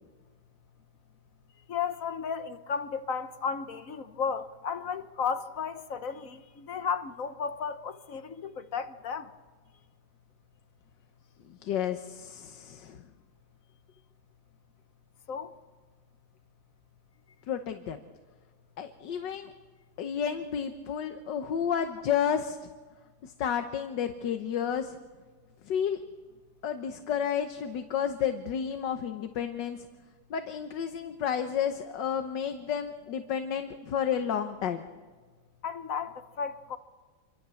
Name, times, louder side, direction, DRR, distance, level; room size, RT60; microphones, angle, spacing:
voice 1, 1.7-9.3 15.3-15.5 35.6-36.8, left 6 dB, 55° left, 1.3 m, -34 dB
voice 2, 11.5-13.0 17.5-18.0 18.8-19.5 20.0-22.6 23.2-25.0 25.7-26.0 26.6-29.9 30.3-34.8, left 8 dB, 80° left, 1.7 m, -31 dB
27.0 x 24.5 x 7.0 m
omnidirectional pair, 1.9 m